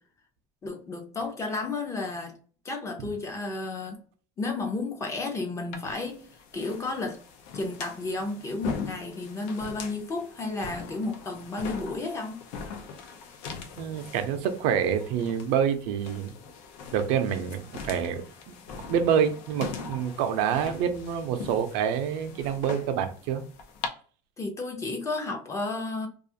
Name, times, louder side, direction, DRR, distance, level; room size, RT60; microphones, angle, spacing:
voice 1, 0.6-2.3 2.6-4.0 4.4-6.2 6.5-7.2 7.5-12.4 24.4-26.1, left 3 dB, 20° left, 0.5 m, -32 dB
sound 1, 5.7-23.9, left 5 dB, 85° left, 0.5 m, -41 dB
voice 2, 13.8-16.3 16.9-18.5 18.9-23.4, right 8 dB, 75° right, 0.5 m, -27 dB
2.4 x 2.4 x 2.7 m
cardioid pair, 155°, 15 cm